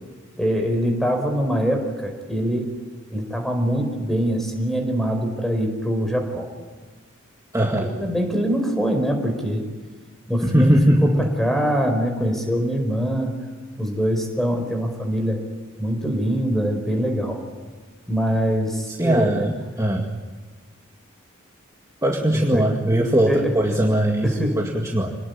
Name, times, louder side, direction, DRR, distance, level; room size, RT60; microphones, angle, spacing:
voice 1, 0.4-2.7 3.1-6.5 7.8-9.6 10.3-13.4 13.8-15.4 15.8-17.4 18.1-19.5 22.3-22.6 23.3-23.6 24.2-24.6, equal, ahead, 4 dB, 4.9 m, -23 dB
voice 2, 7.5-7.9 10.4-11.3 19.0-20.1 22.0-25.2, right 1 dB, 15° right, 0 dB, 2.0 m, -20 dB
27.0 x 19.5 x 9.7 m, 1.4 s
head